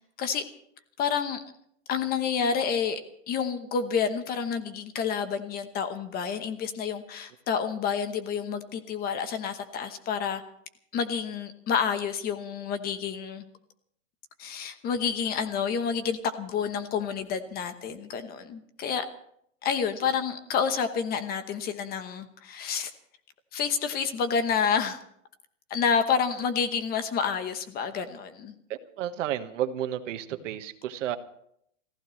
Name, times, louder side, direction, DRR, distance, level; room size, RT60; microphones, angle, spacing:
voice 1, 1.0-1.4 1.9-3.0 3.3-10.4 10.9-13.4 14.4-19.0 19.6-22.9 23.5-25.0 25.7-28.5, left 6 dB, 25° left, 10 dB, 1.0 m, -29 dB
voice 2, 28.7-31.2, right 11 dB, 70° right, 8 dB, 1.5 m, -32 dB
28.5 x 15.0 x 3.2 m, 0.70 s
supercardioid pair, 150°, 39 cm